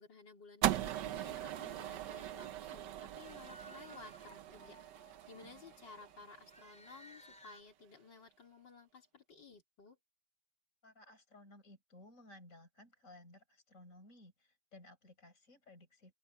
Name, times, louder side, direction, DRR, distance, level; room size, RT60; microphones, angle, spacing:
voice 1, 0.0-10.0, left 4 dB, 75° left, 4.1 m, -56 dB
sound 1, 0.6-7.0, right 12 dB, 75° right, 1.4 m, -40 dB
sound 2, 1.8-7.6, equal, 5° left, 2.7 m, -60 dB
voice 2, 10.8-16.1, left 1 dB, 45° left, 5.4 m, -58 dB
open air
omnidirectional pair, 2.0 m